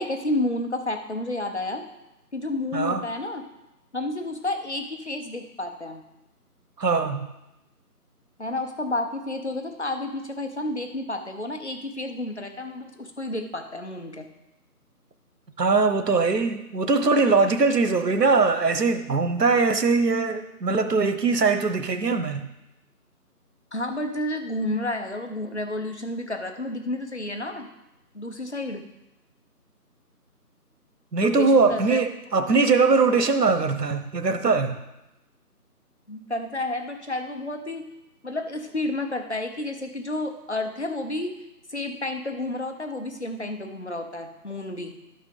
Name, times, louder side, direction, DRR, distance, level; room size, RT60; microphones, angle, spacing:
voice 1, 0.0-1.9 2.3-3.4 3.9-6.0 8.4-14.3 23.7-27.7 28.1-28.8 31.2-32.0 36.1-37.8 38.2-41.3 41.7-44.9, left 1 dB, 45° left, 5 dB, 1.0 m, -30 dB
voice 2, 2.7-3.0 6.8-7.3 15.6-22.5 31.1-34.8, right 4 dB, 85° right, 8 dB, 1.0 m, -21 dB
12.0 x 4.5 x 5.3 m, 0.93 s
figure-of-eight pair, 175°, 47 cm